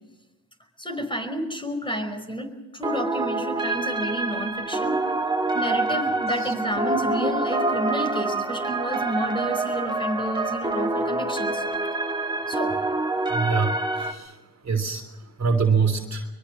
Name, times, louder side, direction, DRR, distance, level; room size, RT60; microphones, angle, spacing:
voice 1, 0.8-5.0 5.5-11.6 12.5-12.8, right 1 dB, 10° left, 5 dB, 5.1 m, -30 dB
sound 1, 2.8-14.1, right 2 dB, 10° right, 2.5 m, -26 dB
voice 2, 13.3-14.3 14.6-15.0 15.4-16.3, right 5 dB, 40° right, 3 dB, 3.3 m, -24 dB
23.5 x 22.5 x 6.3 m, 1.1 s
supercardioid pair, 60°, 42 cm